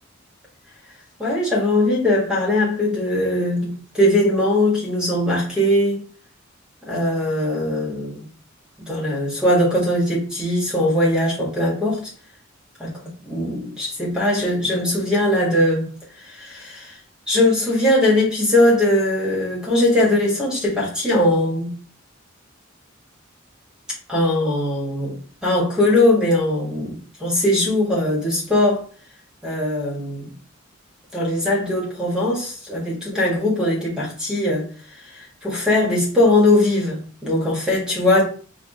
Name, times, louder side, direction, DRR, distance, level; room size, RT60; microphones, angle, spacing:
voice 1, 1.2-6.0 6.8-8.2 8.8-12.1 12.8-15.9 16.2-17.0 17.3-21.7 24.1-28.8 29.4-30.2 31.1-38.3, left 1 dB, 5° right, 1.6 m, -20 dB
4.8 x 2.5 x 3.6 m
head